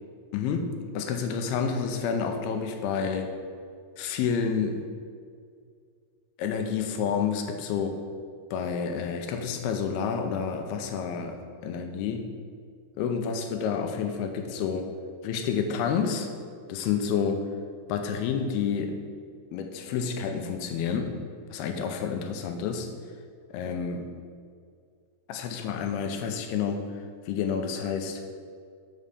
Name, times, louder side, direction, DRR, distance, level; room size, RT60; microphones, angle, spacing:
voice 1, 0.3-3.3 4.0-4.8 6.4-8.0 8.5-11.4 11.6-12.3 13.0-14.9 15.2-16.3 16.7-17.5 17.9-19.0 19.5-21.2 21.5-22.9 23.5-24.1 25.3-28.2, left 6 dB, 80° left, 5 dB, 2.5 m, -29 dB
6.5 x 5.5 x 6.5 m, 2.2 s
omnidirectional pair, 4.8 m